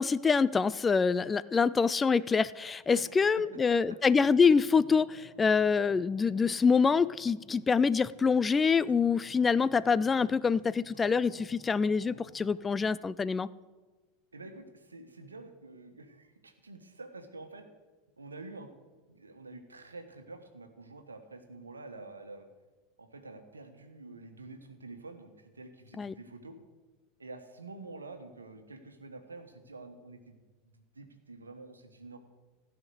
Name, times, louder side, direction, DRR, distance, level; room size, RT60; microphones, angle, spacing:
voice 1, 0.0-13.5 26.0-26.1, left 5 dB, 20° left, 17 dB, 0.3 m, -26 dB
voice 2, 2.9-4.0 14.3-17.6 18.2-18.7 19.1-22.5 23.0-26.6 27.2-30.4 30.7-32.2, right 3 dB, 80° right, 7 dB, 1.3 m, -48 dB
sound 1, 4.0-12.9, left 1 dB, 85° left, 3.5 m, -56 dB
15.0 x 5.8 x 8.0 m, 1.3 s
figure-of-eight pair, 80°, 0 cm